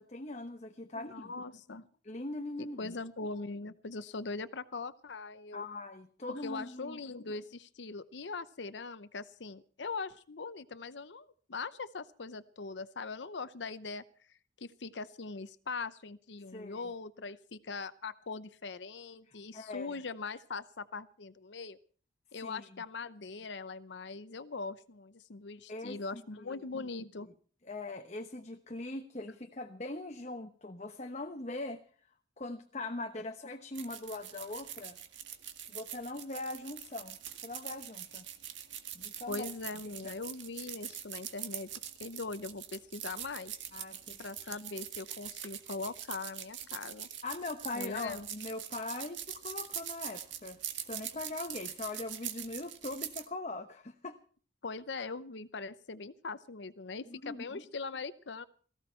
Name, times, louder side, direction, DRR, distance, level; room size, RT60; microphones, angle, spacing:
voice 1, 0.0-1.3 2.0-2.9 5.5-7.0 16.5-16.9 19.3-20.0 22.4-22.7 25.7-26.6 27.6-31.8 32.4-35.0 35.7-37.2 37.4-38.3 38.9-39.4 40.0-40.2 43.7-44.2 47.2-54.2 57.1-57.6, left 2 dB, 40° left, 6 dB, 1.0 m, -41 dB
voice 2, 1.0-1.9 2.6-5.6 6.4-14.0 14.6-21.8 22.3-27.3 39.3-41.7 42.0-43.5 44.2-47.1 47.7-48.3 54.6-58.4, left 4 dB, 75° left, 14 dB, 0.7 m, -41 dB
sound 1, 33.7-53.3, right 10 dB, 90° right, 1.9 m, -43 dB
18.0 x 15.5 x 4.5 m, 0.43 s
head